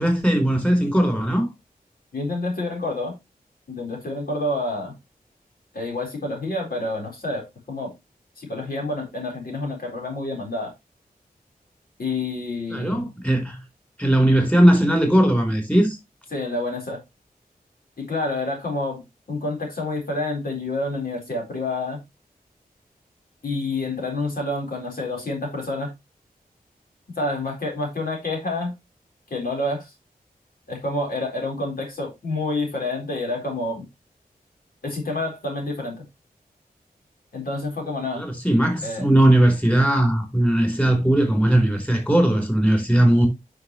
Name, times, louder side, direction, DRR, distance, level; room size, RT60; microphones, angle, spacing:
voice 1, 0.0-1.5 12.7-13.6 14.0-16.0 38.2-43.3, right 1 dB, 10° left, 4.0 m, -18 dB
voice 2, 2.1-3.2 3.7-5.0 5.7-7.9 8.4-10.7 12.0-13.1 16.3-17.0 18.0-22.0 23.4-25.9 27.2-28.7 29.3-29.9 30.7-33.9 34.8-36.0 37.3-38.2 38.8-39.1, left 2 dB, 70° left, 4.3 m, -28 dB
9.7 x 6.1 x 3.1 m
wide cardioid pair, 75°, 16 cm